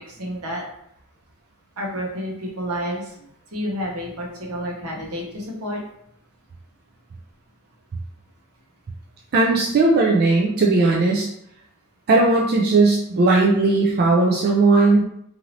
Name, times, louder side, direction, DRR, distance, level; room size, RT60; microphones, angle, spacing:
voice 1, 0.1-0.6 1.8-5.8, equal, 75° right, -1 dB, 0.9 m, -30 dB
voice 2, 9.3-11.3 12.1-15.0, right 3 dB, 45° right, -1 dB, 0.4 m, -17 dB
2.7 x 2.7 x 2.9 m, 0.73 s
head